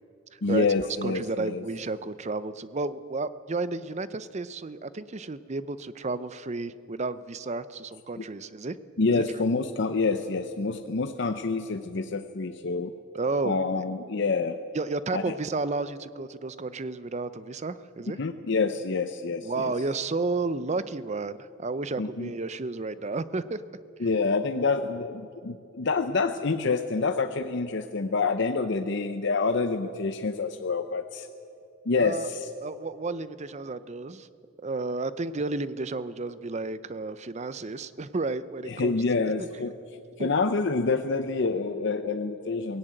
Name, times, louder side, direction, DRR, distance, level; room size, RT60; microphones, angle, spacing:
voice 1, 0.4-1.6 8.2-8.3 9.0-12.9 13.4-14.6 15.1-15.4 18.2-19.7 22.0-22.3 24.0-31.3 31.9-32.5 38.7-39.7 40.2-42.8, left 4 dB, 60° left, 8 dB, 0.7 m, -27 dB
voice 2, 1.0-8.8 9.1-9.2 13.1-13.6 14.7-18.2 19.4-23.6 32.0-32.3 32.6-34.3 34.6-39.0 39.4-39.5 40.2-40.3, right 3 dB, 35° right, 15 dB, 0.6 m, -32 dB
17.5 x 16.5 x 8.9 m, 2.5 s
head